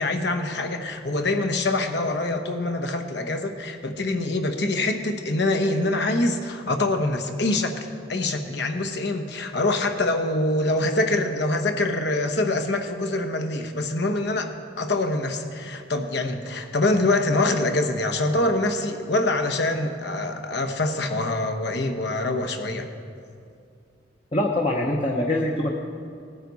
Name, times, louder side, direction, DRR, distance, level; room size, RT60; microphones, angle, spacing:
voice 1, 0.0-14.5 14.8-22.9, left 2 dB, 60° left, 7 dB, 1.0 m, -25 dB
voice 2, 24.3-25.7, left 1 dB, 30° left, 0 dB, 0.9 m, -23 dB
19.0 x 9.3 x 4.1 m, 2.4 s
head